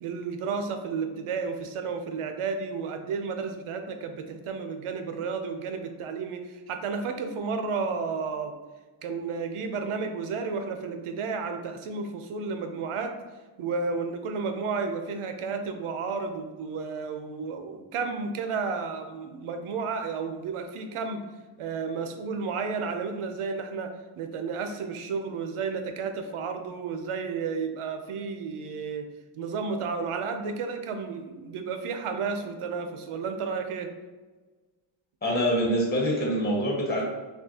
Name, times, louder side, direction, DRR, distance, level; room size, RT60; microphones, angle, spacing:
voice 1, 0.0-8.5 9.0-13.1 13.6-21.2 21.6-23.9 24.2-29.0 29.3-33.9, right 5 dB, 80° right, 6 dB, 0.7 m, -32 dB
voice 2, 35.2-37.0, equal, 20° left, -3 dB, 1.3 m, -25 dB
6.0 x 2.4 x 2.8 m, 1.3 s
cardioid pair, 100°, 49 cm